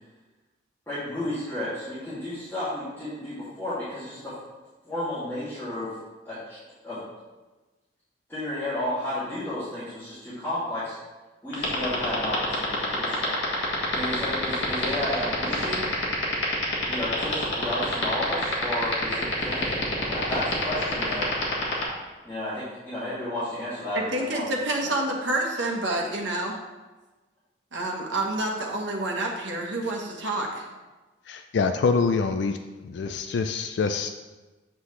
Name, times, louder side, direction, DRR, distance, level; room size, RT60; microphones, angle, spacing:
voice 1, 0.9-4.4 4.8-6.0 6.2-6.6 6.8-7.0 8.3-10.9 11.4-13.4 13.9-15.9 16.9-21.3 22.2-24.5 24.8-24.9, left 1 dB, 10° left, -14 dB, 2.4 m, -32 dB
sound 1, 11.5-21.8, left 3 dB, 85° left, 1.5 m, -26 dB
voice 2, 23.9-26.6 27.7-30.6, right 2 dB, 85° right, 0 dB, 1.2 m, -28 dB
voice 3, 31.3-32.6 32.8-34.1, left 4 dB, 70° left, 7 dB, 0.3 m, -25 dB
8.1 x 5.6 x 3.2 m, 1.2 s
head